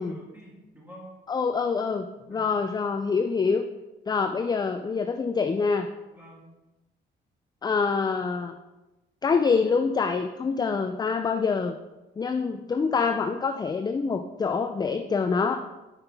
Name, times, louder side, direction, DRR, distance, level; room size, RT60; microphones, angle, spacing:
voice 1, 0.0-1.1 2.2-2.6 6.1-6.5, right 1 dB, 10° right, -3 dB, 2.1 m, -47 dB
voice 2, 1.3-3.7 4.1-5.9 7.6-8.6 9.2-11.7 12.2-15.6, left 5 dB, 20° left, 7 dB, 0.3 m, -26 dB
5.7 x 5.5 x 3.4 m, 1.1 s
cardioid pair, 90°, 20 cm